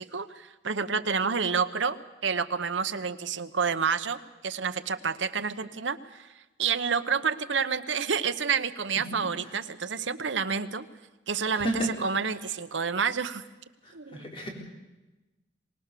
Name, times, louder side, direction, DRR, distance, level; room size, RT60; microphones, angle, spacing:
voice 1, 0.0-6.3 6.6-10.9 11.3-13.4 13.9-14.2, right 6 dB, 80° right, 11 dB, 1.0 m, -29 dB
voice 2, 11.5-11.9 14.1-14.5, right 1 dB, 30° left, 0 dB, 4.0 m, -30 dB
24.0 x 19.5 x 6.8 m, 1.1 s
head